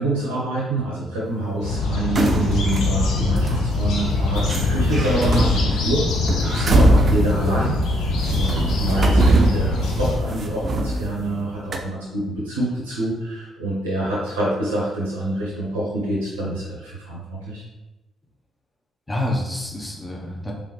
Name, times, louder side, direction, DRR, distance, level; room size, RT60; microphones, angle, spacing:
voice 1, 0.0-17.6, right 1 dB, 85° right, -5 dB, 0.7 m, -26 dB
sound 1, 1.6-10.2, left 3 dB, 65° left, 0.7 m, -23 dB
sound 2, 2.1-2.9 3.4-3.5 4.4-11.4 11.7-11.8, right 1 dB, 45° right, 0.5 m, -22 dB
voice 2, 19.1-20.5, left 1 dB, 15° left, -1 dB, 1.1 m, -28 dB
3.7 x 3.2 x 3.3 m, 1.1 s
figure-of-eight pair, 40°, 0 cm